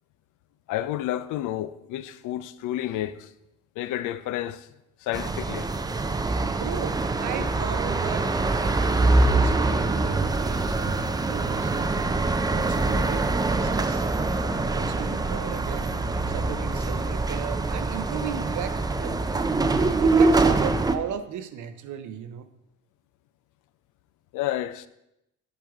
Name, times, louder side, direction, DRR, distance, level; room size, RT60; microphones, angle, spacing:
voice 1, 0.7-3.3 3.8-4.7 5.0-5.7 24.3-24.9, left 13 dB, 85° left, 0.4 m, -30 dB
sound 1, 5.1-21.0, right 3 dB, 15° right, 0.4 m, -24 dB
voice 2, 6.5-12.2 12.5-13.3 13.6-14.1 14.7-16.0 16.3-19.2 20.0-22.5, right 9 dB, 75° right, 0.6 m, -36 dB
7.9 x 5.0 x 3.5 m
cardioid pair, 90°, 30 cm